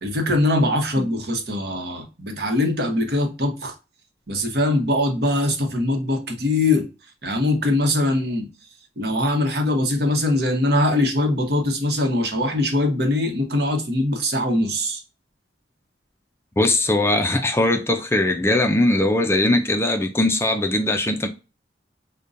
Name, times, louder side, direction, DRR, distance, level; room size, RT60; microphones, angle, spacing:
voice 1, 0.0-3.7 4.3-6.9 7.2-8.5 9.0-15.0, left 1 dB, 60° right, 0.9 m, -22 dB
voice 2, 16.6-21.3, left 1 dB, 15° left, 0.4 m, -20 dB
5.2 x 2.2 x 2.5 m
head